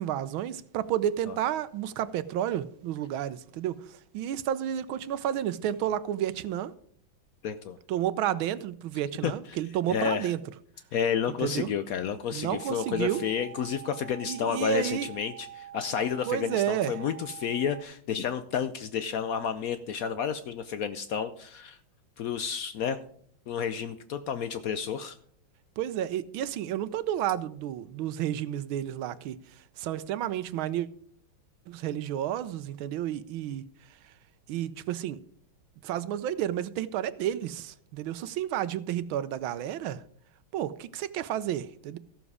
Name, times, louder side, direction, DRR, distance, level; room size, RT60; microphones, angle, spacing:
voice 1, 0.0-6.7 7.9-10.4 11.4-11.7 12.3-13.2 14.3-15.1 16.3-16.9 25.8-29.4 29.8-30.9 31.7-33.6 34.5-35.2 35.8-40.0 40.5-42.0, right 11 dB, 80° right, 1.5 m, -31 dB
voice 2, 7.4-7.8 9.2-9.6 9.9-10.3 10.9-21.8 22.2-23.0 23.5-25.1, left 7 dB, 80° left, 0.7 m, -31 dB
sound 1, 12.5-17.8, right 11 dB, 40° right, 1.3 m, -45 dB
14.5 x 7.2 x 4.9 m
omnidirectional pair, 2.2 m